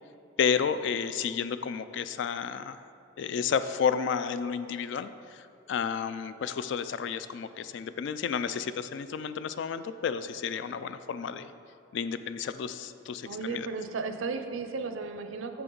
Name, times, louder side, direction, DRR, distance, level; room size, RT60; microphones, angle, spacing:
voice 1, 0.4-2.8 3.2-11.5 11.9-13.7, left 6 dB, 60° left, 13 dB, 0.3 m, -31 dB
voice 2, 13.3-15.6, right 4 dB, 75° right, 7 dB, 0.5 m, -34 dB
7.8 x 6.8 x 3.8 m, 2.5 s
head